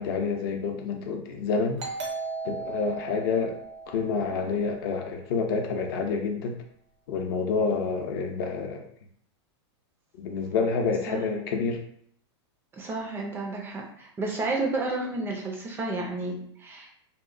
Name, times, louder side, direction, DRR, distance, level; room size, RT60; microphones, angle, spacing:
voice 1, 0.0-1.9 2.4-3.6 3.9-6.6 7.1-8.9 10.1-11.8, left 4 dB, 55° left, 4 dB, 0.5 m, -28 dB
Doorbell, 1.8-5.1, right 4 dB, 85° right, 0.8 m, -37 dB
voice 2, 12.8-16.9, right 2 dB, 15° right, 0 dB, 0.3 m, -31 dB
2.8 x 2.1 x 2.5 m, 0.66 s
supercardioid pair, 145°, 14 cm